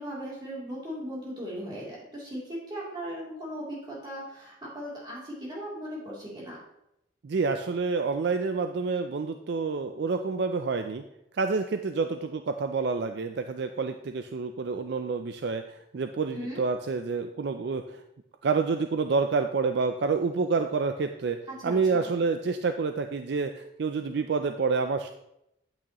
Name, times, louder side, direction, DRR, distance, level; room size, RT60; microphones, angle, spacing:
voice 1, 0.0-6.6 16.3-16.6 21.6-22.1, equal, 20° right, -6 dB, 3.1 m, -38 dB
voice 2, 7.2-11.0 11.3-18.0 18.4-21.4 21.6-25.1, right 4 dB, 55° right, 7 dB, 0.4 m, -28 dB
8.7 x 8.5 x 3.0 m, 0.83 s
head